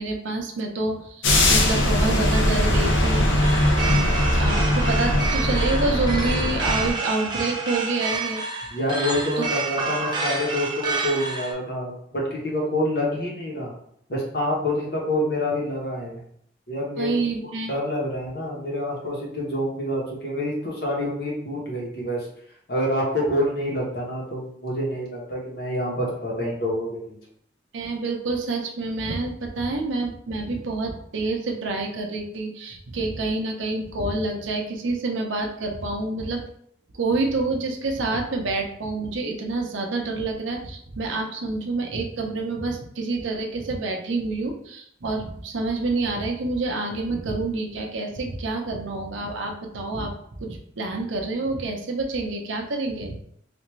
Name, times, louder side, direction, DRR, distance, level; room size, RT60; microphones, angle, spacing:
voice 1, 0.0-3.5 3.8-8.4 9.4-9.5 17.0-17.7 27.7-36.4 36.9-53.2, right 3 dB, 75° right, 2 dB, 0.6 m, -28 dB
sound 1, 1.2-6.9, left 1 dB, 75° left, 0.7 m, -20 dB
sound 2, 3.4-11.5, right 3 dB, 25° right, 0.5 m, -29 dB
voice 2, 8.7-13.7 14.1-16.2 16.7-17.1 17.7-22.3 22.7-27.2, left 1 dB, 50° left, -3 dB, 1.0 m, -27 dB
3.4 x 2.5 x 3.1 m, 0.69 s
head